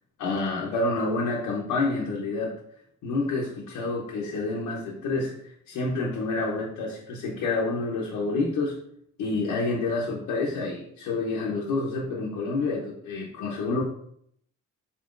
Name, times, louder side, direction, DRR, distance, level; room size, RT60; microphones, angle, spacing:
voice 1, 0.2-2.6 3.0-5.4 5.7-8.8 9.2-13.8, left 3 dB, 80° left, -3 dB, 0.8 m, -28 dB
4.3 x 3.7 x 2.5 m, 0.69 s
cardioid pair, 90°, 30 cm